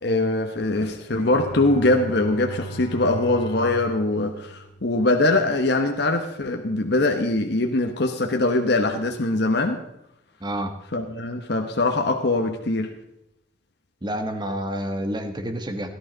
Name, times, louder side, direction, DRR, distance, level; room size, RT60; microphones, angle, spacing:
voice 1, 0.0-9.8 10.9-12.9, left 2 dB, 60° left, 3 dB, 1.1 m, -22 dB
Bowed string instrument, 1.1-5.6, right 1 dB, 35° left, 1.5 m, -37 dB
voice 2, 10.4-10.7 14.0-15.9, right 1 dB, 25° right, 7 dB, 1.2 m, -28 dB
17.0 x 12.0 x 4.0 m, 0.83 s
head